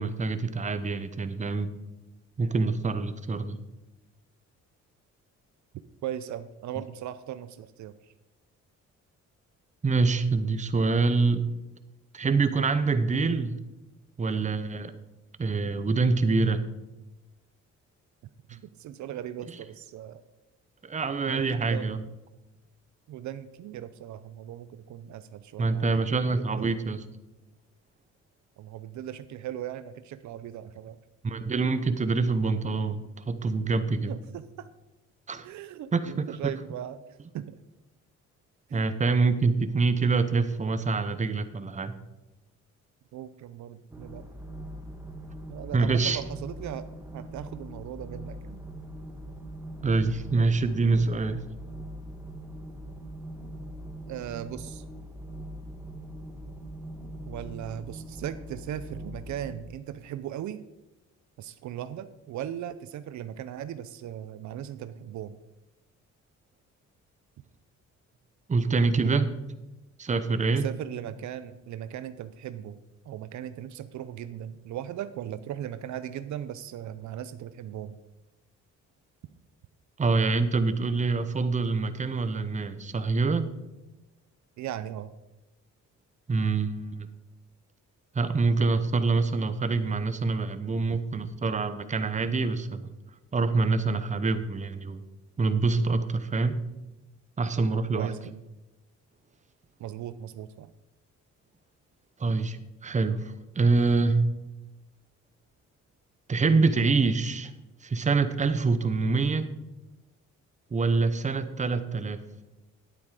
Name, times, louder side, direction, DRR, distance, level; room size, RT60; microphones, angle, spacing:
voice 1, 0.0-1.7 2.4-3.6 9.8-11.5 12.1-13.6 14.2-14.9 15.4-16.6 20.8-22.0 25.6-27.0 31.2-34.2 35.3-35.5 35.9-36.5 38.7-41.9 45.7-46.2 49.8-51.4 68.5-69.4 70.0-70.7 80.0-83.5 86.3-87.1 88.1-92.9 93.3-95.0 95.4-96.6 97.4-98.1 102.2-104.3 106.3-107.5 107.8-109.5 110.7-112.2, right 3 dB, 25° right, 10 dB, 0.8 m, -25 dB
voice 2, 6.0-8.1 18.5-20.2 21.3-21.9 23.1-26.5 28.6-31.0 34.1-34.7 35.4-37.0 37.3-37.6 38.7-39.0 43.1-44.2 45.5-46.8 47.1-48.6 54.1-54.8 57.3-60.6 61.4-65.4 70.5-72.8 73.0-78.0 84.6-85.1 91.2-91.3 97.9-98.4 99.8-100.7, right 11 dB, 70° right, 13 dB, 0.6 m, -38 dB
sound 1, 43.9-59.6, right 1 dB, 10° right, 1.5 m, -41 dB
10.0 x 8.5 x 4.9 m, 1.0 s
cardioid pair, 90°, 30 cm